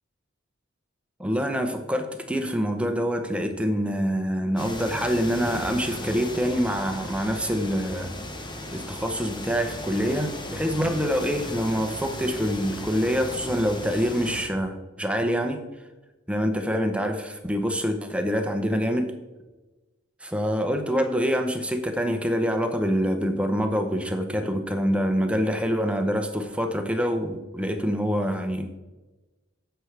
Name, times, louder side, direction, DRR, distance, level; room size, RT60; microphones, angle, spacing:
voice 1, 1.2-8.1 8.7-15.6 16.3-19.1 20.2-28.8, equal, 5° right, 6 dB, 0.8 m, -26 dB
sound 1, 4.6-14.5, left 1 dB, 20° left, 1.0 m, -36 dB
10.5 x 7.9 x 3.4 m, 1.1 s
head